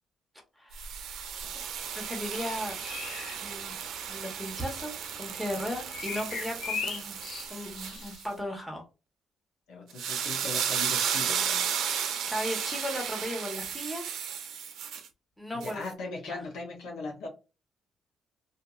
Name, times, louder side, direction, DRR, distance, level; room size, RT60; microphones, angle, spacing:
voice 1, 0.6-1.3 1.9-2.7 3.4-3.7 4.1-7.2 7.5-8.8 11.9-14.1 15.4-15.9 16.2-16.4, equal, 5° left, 1.1 m, -36 dB
sound 1, 0.7-8.2 9.9-15.1 15.6-15.7, right 8 dB, 80° right, 0.5 m, -34 dB
sound 2, 2.4-3.4 5.9-8.2, left 6 dB, 60° left, 0.5 m, -37 dB
voice 2, 9.7-11.7 15.5-17.3, left 3 dB, 85° left, 1.1 m, -39 dB
2.7 x 2.7 x 2.4 m
cardioid pair, 90°, 0 cm